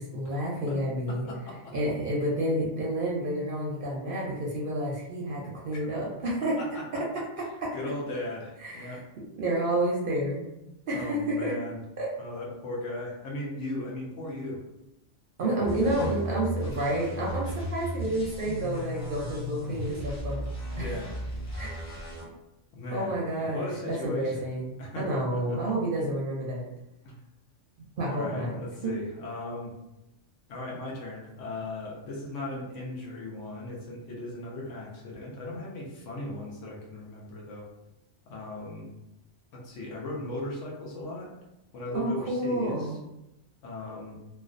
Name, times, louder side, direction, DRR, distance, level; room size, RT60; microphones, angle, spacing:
voice 1, 0.0-1.3 1.7-6.6 6.9-7.1 7.4-7.7 8.6-9.0 9.4-10.5 10.9-11.6 12.0-12.1 15.4-20.4 20.7-20.9 21.6-21.7 22.9-26.6 28.0-28.6 28.8-28.9 41.9-43.0, right 1 dB, 60° right, -4 dB, 0.6 m, -30 dB
voice 2, 1.1-1.9 6.6-6.8 7.7-9.0 10.9-11.8 12.2-14.6 15.4-15.6 16.0-16.1 20.7-21.1 22.7-23.1 23.4-24.4 24.8-25.6 27.0-27.2 28.0-29.7 30.5-37.7 38.3-38.9 39.5-41.3 41.7-42.9 43.6-44.2, left 2 dB, 80° left, -2 dB, 1.0 m, -37 dB
sound 1, 15.6-22.2, equal, 20° left, 0.4 m, -35 dB
2.5 x 2.2 x 2.4 m, 0.92 s
omnidirectional pair, 1.2 m